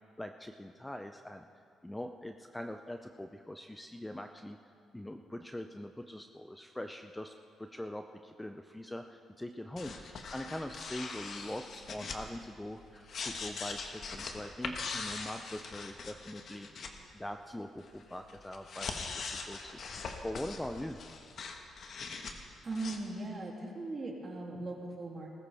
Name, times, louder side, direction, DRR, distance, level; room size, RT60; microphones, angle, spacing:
voice 1, 0.2-1.5 1.8-4.6 4.9-18.9 19.3-21.0, left 1 dB, 10° left, 6 dB, 0.5 m, -43 dB
sound 1, 9.8-16.9 17.9-22.3 22.7-23.0, left 4 dB, 55° left, 1.3 m, -42 dB
voice 2, 22.6-25.3, right 2 dB, 35° right, -2 dB, 2.7 m, -39 dB
19.5 x 14.5 x 3.5 m, 2.4 s
cardioid pair, 90°, 0 cm